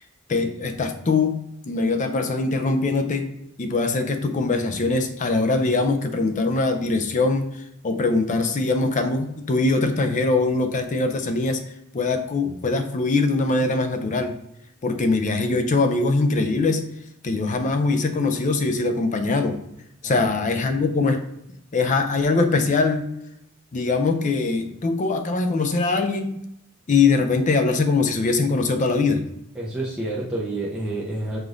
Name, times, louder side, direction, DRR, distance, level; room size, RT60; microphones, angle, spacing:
voice 1, 0.3-1.4 1.7-3.3 3.6-11.6 11.9-14.3 14.8-16.8 17.2-19.6 20.0-21.2 21.7-23.0 23.7-26.4 26.9-29.2, left 3 dB, 35° left, 6 dB, 0.4 m, -22 dB
voice 2, 29.5-31.4, right 2 dB, 5° right, -5 dB, 0.6 m, -29 dB
5.0 x 2.5 x 3.7 m, 0.80 s
head